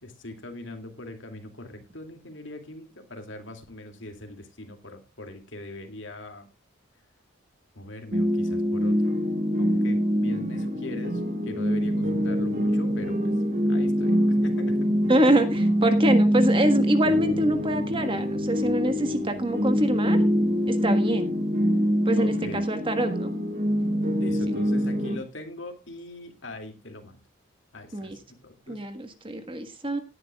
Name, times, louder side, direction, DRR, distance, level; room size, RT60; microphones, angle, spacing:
voice 1, 0.0-6.5 7.7-9.2 9.6-13.3 13.7-14.7 22.2-22.6 24.2-27.2 27.7-28.8, left 1 dB, 65° left, 5 dB, 2.5 m, -41 dB
sound 1, 8.1-25.2, equal, 40° right, 1.8 m, -24 dB
voice 2, 15.1-20.2 20.7-21.3 22.0-23.3 27.9-28.2 28.7-30.0, right 1 dB, 25° right, 8 dB, 1.4 m, -25 dB
17.5 x 10.5 x 2.4 m, 0.25 s
head